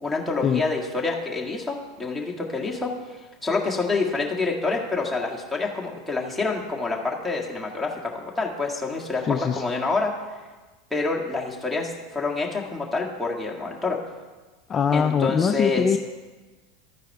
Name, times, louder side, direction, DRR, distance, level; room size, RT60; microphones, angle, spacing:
voice 1, 0.0-10.3 10.9-14.0 14.9-15.9, left 3 dB, ahead, -3 dB, 1.7 m, -27 dB
voice 2, 9.2-9.6 14.7-16.0, left 7 dB, 30° left, 8 dB, 0.3 m, -22 dB
12.5 x 4.7 x 4.6 m, 1.3 s
hypercardioid pair, 95°, 0 cm